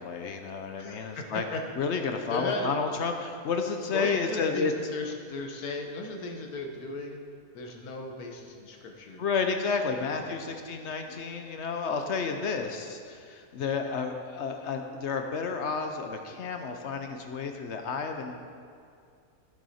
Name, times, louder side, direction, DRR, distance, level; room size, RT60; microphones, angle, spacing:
voice 1, 0.0-1.4 1.8-4.7 9.2-18.4, left 5 dB, 60° left, 5 dB, 0.8 m, -31 dB
voice 2, 0.8-1.7 2.3-2.8 3.9-7.2 7.5-9.2 10.1-10.7, left 2 dB, 80° left, 2 dB, 1.6 m, -36 dB
13.5 x 6.3 x 4.2 m, 2.3 s
omnidirectional pair, 1.6 m